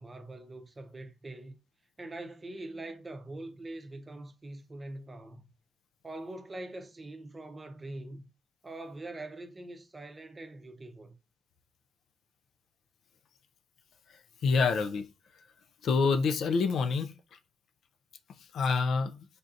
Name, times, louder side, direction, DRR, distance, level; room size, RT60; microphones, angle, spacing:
voice 1, 0.0-1.5 2.0-5.5 6.0-8.2 8.6-11.2, right 2 dB, 25° right, 0.6 m, -43 dB
voice 2, 14.4-15.1 15.8-17.1 18.5-19.3, left 4 dB, 70° left, 0.3 m, -26 dB
3.3 x 2.6 x 2.4 m
cardioid pair, 100°, 0 cm